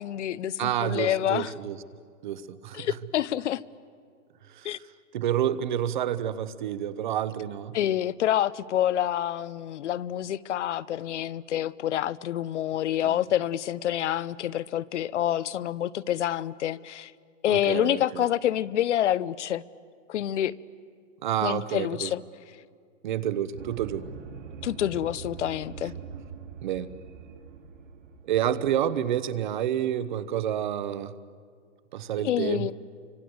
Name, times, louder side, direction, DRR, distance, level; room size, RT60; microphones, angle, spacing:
voice 1, 0.0-1.5 2.7-3.6 4.6-4.8 7.7-17.1 17.4-19.6 20.1-20.5 21.4-22.2 24.6-25.9 32.2-32.7, left 11 dB, 70° left, 19 dB, 0.8 m, -27 dB
voice 2, 0.6-1.8 2.2-2.9 4.5-4.8 5.1-7.8 13.0-13.2 17.5-18.2 21.2-22.1 23.0-24.1 26.6-26.9 28.3-31.1 31.9-32.7, right 10 dB, 40° right, 15 dB, 0.9 m, -29 dB
sound 1, 23.5-28.6, right 6 dB, 75° right, 2.9 m, -43 dB
29.5 x 25.0 x 7.9 m, 2.1 s
supercardioid pair, 175°, 37 cm